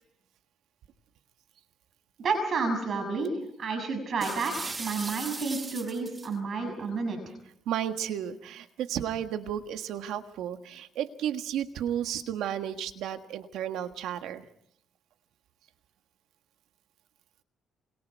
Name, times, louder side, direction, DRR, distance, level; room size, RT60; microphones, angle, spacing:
voice 1, 2.2-3.3 3.6-7.3, right 4 dB, 55° right, 7 dB, 6.6 m, -30 dB
sound 1, 4.2-6.3, right 3 dB, 30° right, 1.4 m, -38 dB
voice 2, 7.6-14.5, right 10 dB, 85° right, 8 dB, 1.6 m, -33 dB
27.5 x 27.0 x 4.7 m, 0.69 s
cardioid pair, 90°, 0 cm